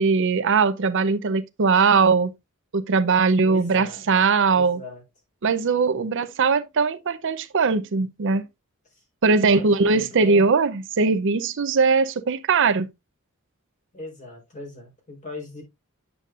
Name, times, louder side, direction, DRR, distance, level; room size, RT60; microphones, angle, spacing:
voice 1, 0.0-2.3 2.7-4.8 5.4-8.5 9.2-12.9, right 4 dB, 60° right, 0.6 m, -20 dB
voice 2, 3.4-4.0 4.5-5.0 8.9-10.5 13.9-15.6, left 2 dB, 35° left, 3.9 m, -39 dB
8.3 x 7.0 x 2.4 m
head